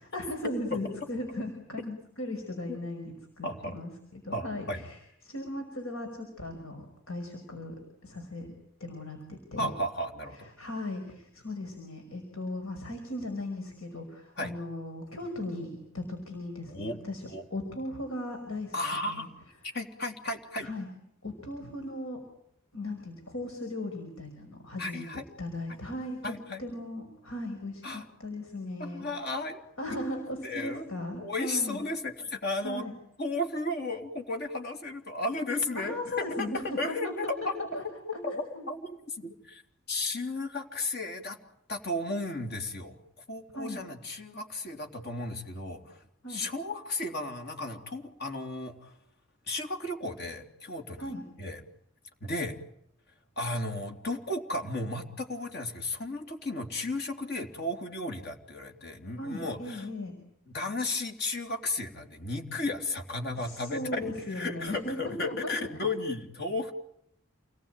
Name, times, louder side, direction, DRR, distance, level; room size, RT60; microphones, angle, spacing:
voice 1, 0.1-5.0 5.2-8.5 8.8-9.7 10.6-18.8 19.1-19.3 20.6-20.9 21.2-22.2 22.7-25.1 25.4-29.0 29.8-31.8 32.6-32.9 35.7-37.8 38.1-38.7 43.5-43.8 46.2-46.4 51.0-51.2 59.2-60.2 63.3-65.6, left 1 dB, 90° left, 4 dB, 5.6 m, -37 dB
voice 2, 3.4-3.7 4.3-4.8 9.6-10.5 14.4-14.5 16.7-17.0 17.3-17.4 18.7-19.3 19.7-20.7 24.8-25.2 26.2-26.6 27.8-28.1 28.8-29.6 30.2-30.9 31.2-32.8 33.2-37.7 38.2-39.6 39.9-41.4 41.7-43.0 43.3-46.0 46.3-48.9 49.5-51.1 51.4-51.6 52.2-52.6 53.4-59.9 60.5-66.7, left 2 dB, 50° left, 4 dB, 3.5 m, -34 dB
29.0 x 20.0 x 9.2 m, 0.74 s
head